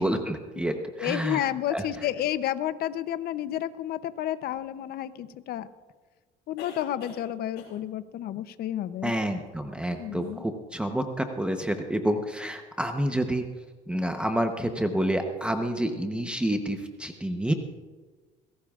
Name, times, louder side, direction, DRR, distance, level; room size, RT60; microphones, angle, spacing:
voice 1, 0.0-1.9 9.0-13.4 13.9-17.5, right 1 dB, 5° right, 5 dB, 0.9 m, -28 dB
voice 2, 1.0-5.7 6.5-9.1 10.0-10.4, left 12 dB, 60° left, 13 dB, 0.7 m, -31 dB
sound 1, 4.5-4.6 6.6-7.3 7.6-7.9 9.8-9.9 10.2-10.3, left 5 dB, 80° left, 3.2 m, -44 dB
22.0 x 16.5 x 2.5 m, 1.4 s
cardioid pair, 120°, 18 cm